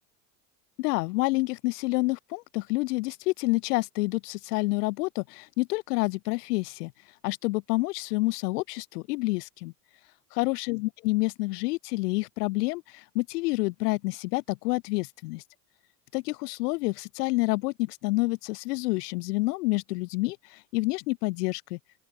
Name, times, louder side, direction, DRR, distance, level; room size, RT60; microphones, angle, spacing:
voice 1, 0.8-6.9 7.2-9.7 10.3-15.4 16.1-21.8, left 23 dB, 70° left, 3.5 m, -28 dB
open air
hypercardioid pair, 75°, 48 cm